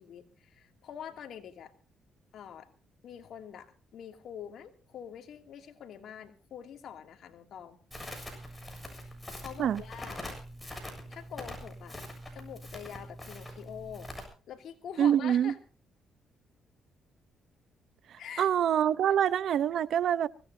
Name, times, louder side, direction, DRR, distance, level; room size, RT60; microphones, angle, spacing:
voice 1, 0.0-1.7 2.3-2.7 3.0-7.8 8.9-9.1 9.4-10.3 11.1-12.0 12.3-14.1 14.5-15.6 18.2-18.5 19.1-19.2, left 9 dB, 70° left, 2.6 m, -45 dB
Crackle, 7.9-14.2, equal, 10° left, 7.3 m, -43 dB
voice 2, 15.0-15.5 18.1-20.3, right 9 dB, 70° right, 0.8 m, -26 dB
24.0 x 17.0 x 2.7 m
cardioid pair, 90°, 0 cm